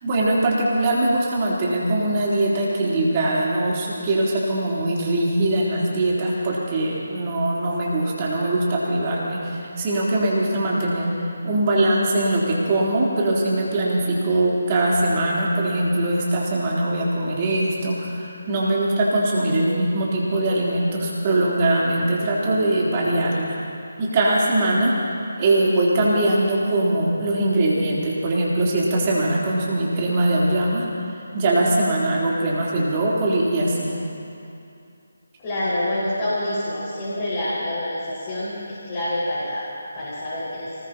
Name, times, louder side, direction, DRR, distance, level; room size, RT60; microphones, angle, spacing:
voice 1, 0.0-11.1 11.4-23.6 24.0-30.9 31.3-33.9, right 1 dB, 30° right, -5 dB, 3.5 m, -21 dB
voice 2, 35.4-39.7 39.9-40.7, left 1 dB, 30° left, -9 dB, 5.1 m, -27 dB
24.0 x 20.0 x 2.9 m, 2.6 s
figure-of-eight pair, 150°, 0 cm